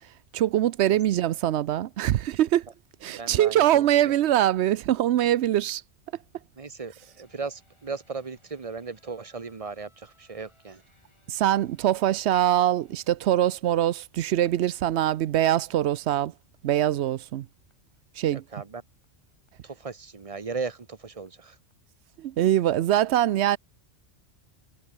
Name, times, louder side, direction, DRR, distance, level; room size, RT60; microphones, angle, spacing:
voice 1, 0.3-2.6 3.0-5.8 11.3-16.3 16.6-17.5 18.2-18.4 22.2-23.6, right 12 dB, 70° right, 0.8 m, -23 dB
voice 2, 3.2-4.1 6.6-10.8 18.3-18.8 19.6-21.6, right 4 dB, 30° right, 1.1 m, -37 dB
sound 1, 7.0-21.3 21.7-21.8, left 1 dB, 25° left, 7.6 m, -68 dB
omnidirectional pair, 1.2 m